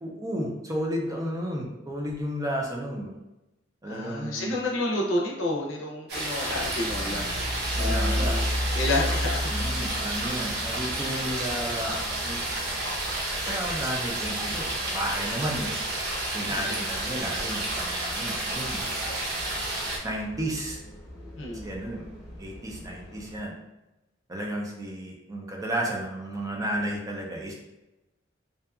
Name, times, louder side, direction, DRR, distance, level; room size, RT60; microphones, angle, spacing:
voice 1, 0.0-3.2 3.8-4.5 7.8-8.3 9.5-12.4 13.4-15.7 16.3-19.2 20.0-20.8 21.6-22.1 22.4-23.5 24.3-27.6, right 1 dB, 20° right, -1 dB, 0.4 m, -33 dB
voice 2, 3.8-8.5 8.7-9.6 16.5-16.8 21.4-21.7, left 2 dB, 80° left, -2 dB, 0.6 m, -30 dB
sound 1, 6.1-20.0, right 2 dB, 60° right, 0.6 m, -31 dB
sound 2, 6.5-23.4, left 1 dB, 15° left, 0.8 m, -36 dB
2.6 x 2.3 x 2.3 m, 0.96 s
head